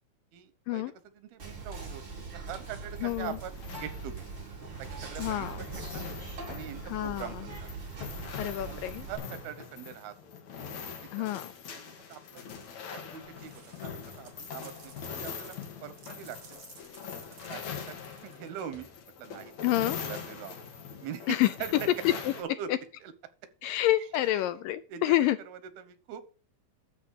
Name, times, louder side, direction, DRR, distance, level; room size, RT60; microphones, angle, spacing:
voice 1, 0.3-2.0 2.3-4.3 4.8-6.1 6.5-7.8 8.6-10.1 11.2-11.3 11.8-12.4 12.9-13.5 13.8-16.6 17.5-18.0 18.2-18.9 19.2-20.6 21.0-21.9 22.4-22.7 23.0-23.1 24.1-24.4 24.9-25.0 25.5-26.3, right 9 dB, 90° right, 12 dB, 3.1 m, -43 dB
Whispering, 1.4-9.2, right 4 dB, 30° right, 4.0 m, -41 dB
sound 1, 2.5-22.4, left 7 dB, 55° left, 2.8 m, -43 dB
voice 2, 3.0-3.4 5.2-5.6 6.8-7.5 8.4-9.1 11.1-11.5 19.6-20.0 21.3-21.5 22.0-22.3 22.7-22.8 23.6-25.4, left 15 dB, 80° left, 13 dB, 2.2 m, -28 dB
sound 2, 13.2-18.8, right 7 dB, 55° right, 2.3 m, -56 dB
13.0 x 4.4 x 6.4 m, 0.36 s
omnidirectional pair, 4.3 m